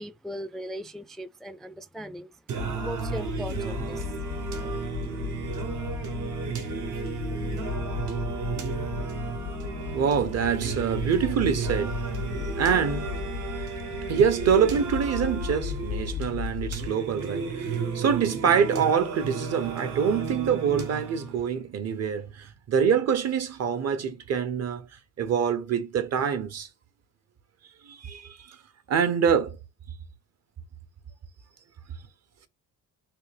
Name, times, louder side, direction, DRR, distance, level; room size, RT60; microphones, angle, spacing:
voice 1, 0.0-4.2, equal, ahead, 0.3 m, -39 dB
Singing, 2.5-21.5, right 6 dB, 75° right, 1.0 m, -33 dB
sound 1, 2.6-16.9, left 7 dB, 65° left, 0.5 m, -35 dB
voice 2, 9.9-13.2 14.1-24.9 25.2-26.7 27.8-28.6 28.9-29.6, right 7 dB, 55° right, 0.8 m, -25 dB
3.3 x 3.1 x 3.3 m
cardioid pair, 90°, 30 cm